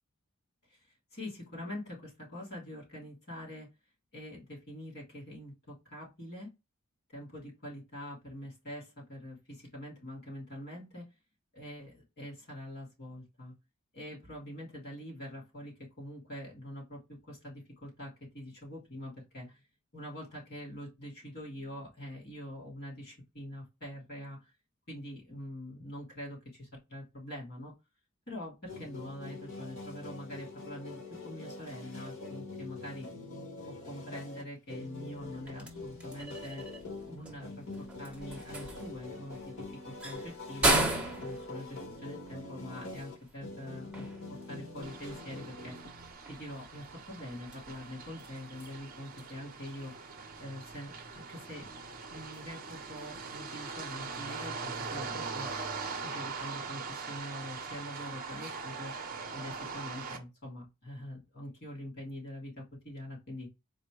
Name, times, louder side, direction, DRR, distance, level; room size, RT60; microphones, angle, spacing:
voice 1, 1.1-3.7 4.1-6.5 7.1-11.1 11.5-13.5 13.9-19.6 19.9-24.5 24.9-27.7 28.3-33.1 33.7-36.6 37.1-37.5 38.0-39.5 39.9-40.8 41.2-44.1 44.5-45.8 46.3-49.9 50.4-51.8 52.1-55.5 56.0-58.9 59.3-63.5, left 1 dB, 50° left, -3 dB, 2.7 m, -44 dB
sound 1, 28.7-46.1, left 3 dB, 75° left, 1.7 m, -45 dB
sound 2, 35.1-54.7, right 2 dB, 5° right, 0.8 m, -39 dB
sound 3, 44.8-60.2, right 4 dB, 40° right, 0.7 m, -42 dB
4.2 x 2.1 x 4.6 m, 0.24 s
head